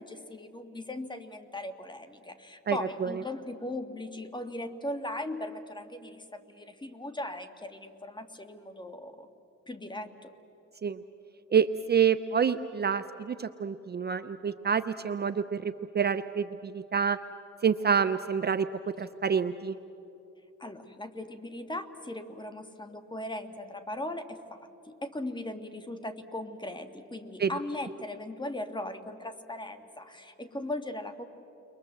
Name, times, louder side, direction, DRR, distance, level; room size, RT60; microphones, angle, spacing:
voice 1, 0.0-9.3 9.7-10.3 18.9-19.0 20.6-31.3, left 1 dB, 15° left, 8 dB, 1.8 m, -38 dB
voice 2, 2.7-3.2 10.8-11.0 11.5-17.2 17.6-18.7 19.0-19.8 27.4-27.5, right 7 dB, 35° right, 11 dB, 0.7 m, -27 dB
30.0 x 22.5 x 7.9 m, 2.9 s
cardioid pair, 90°, 30 cm